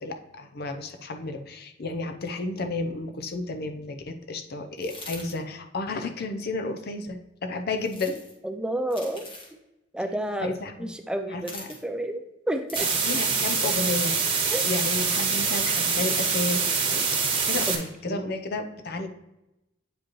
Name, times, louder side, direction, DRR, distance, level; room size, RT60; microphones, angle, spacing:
voice 1, 0.0-8.2 10.4-10.9 11.3-11.7 12.8-19.1, left 3 dB, 55° left, 6 dB, 0.6 m, -32 dB
sound 1, 4.8-5.3 7.8-8.3 8.9-9.5 11.4-11.8 12.7-13.3 14.3-14.7, left 2 dB, 30° left, 1.5 m, -42 dB
voice 2, 8.4-9.3 9.9-10.5 10.8-12.2 12.5-12.9 14.5-14.6 18.1-18.3, right 1 dB, 5° right, 6 dB, 0.4 m, -30 dB
sound 2, 12.8-17.8, right 5 dB, 30° right, 1.1 m, -25 dB
8.5 x 5.1 x 3.0 m, 0.94 s
head